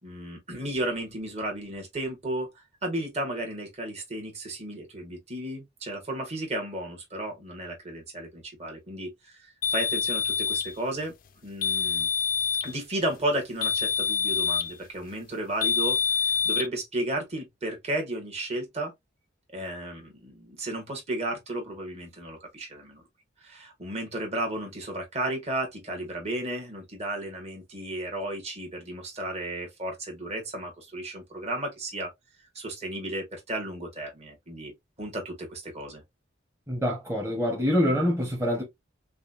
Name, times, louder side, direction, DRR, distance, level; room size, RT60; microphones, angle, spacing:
voice 1, 0.0-2.5 2.8-11.1 11.4-12.1 12.6-18.9 19.5-23.0 23.4-32.1 32.5-34.7 35.0-36.0, right 1 dB, 35° right, 1.7 m, -33 dB
sound 1, 9.6-10.7 11.6-12.7 13.6-14.7 15.6-16.7, left 6 dB, 50° left, 0.4 m, -26 dB
voice 2, 36.7-38.6, equal, 15° right, 1.1 m, -25 dB
5.3 x 2.4 x 2.6 m
head